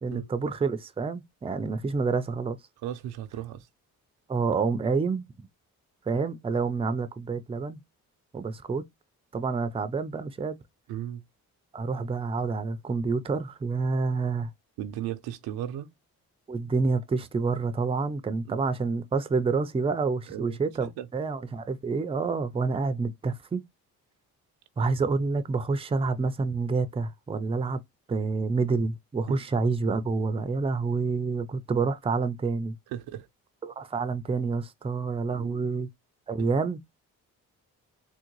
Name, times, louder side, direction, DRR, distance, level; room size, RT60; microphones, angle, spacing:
voice 1, 0.0-2.6 4.3-5.2 6.1-7.8 8.3-8.8 9.3-10.6 11.7-14.5 16.5-23.6 24.8-27.8 28.1-32.8 33.6-35.9 36.3-36.8, right 4 dB, 15° right, 0.4 m, -28 dB
voice 2, 2.8-3.7 10.9-11.2 14.8-15.9 18.5-18.6 20.3-21.1 29.3-29.4 32.9-33.3 35.3-35.7, right 11 dB, 90° right, 0.5 m, -36 dB
3.7 x 2.1 x 3.0 m
cardioid pair, 65°, 37 cm